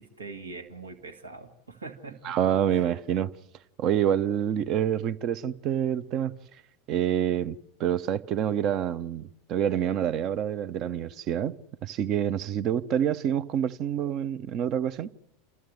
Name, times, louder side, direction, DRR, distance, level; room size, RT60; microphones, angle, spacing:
voice 1, 0.0-2.4 2.7-2.9, right 3 dB, 80° right, 2.0 m, -43 dB
voice 2, 2.2-3.3 3.8-6.3 6.9-15.1, right 9 dB, 40° right, 0.8 m, -27 dB
28.5 x 14.0 x 9.4 m
figure-of-eight pair, 85°, 0 cm